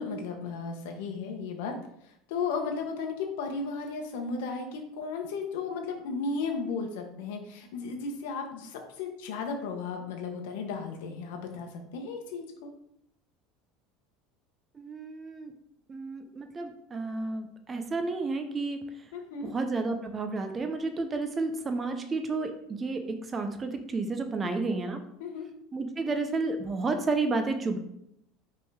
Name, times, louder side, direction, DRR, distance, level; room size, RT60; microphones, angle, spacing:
voice 1, 0.0-1.7 2.0-12.7 19.1-19.5 25.2-25.5, left 4 dB, 85° left, 3 dB, 1.1 m, -35 dB
voice 2, 14.7-15.5 15.9-18.8 19.4-25.0 25.7-27.8, right 3 dB, 20° right, 6 dB, 0.6 m, -31 dB
5.7 x 3.7 x 4.8 m, 0.75 s
cardioid pair, 150°, 0 cm